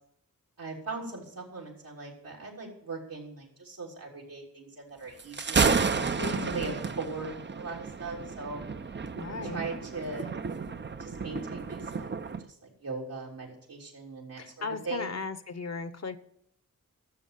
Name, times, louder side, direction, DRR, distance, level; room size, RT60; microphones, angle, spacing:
voice 1, 0.6-8.6 9.4-10.3 11.0-12.1 12.4-15.1, right 3 dB, 80° right, -2 dB, 3.6 m, -39 dB
Thunder, 5.2-12.4, right 5 dB, 35° right, 0.7 m, -31 dB
voice 2, 6.2-6.7 9.2-9.7 14.4-16.2, left 4 dB, 50° left, 12 dB, 1.0 m, -36 dB
12.5 x 7.2 x 6.7 m, 0.75 s
cardioid pair, 45°, 34 cm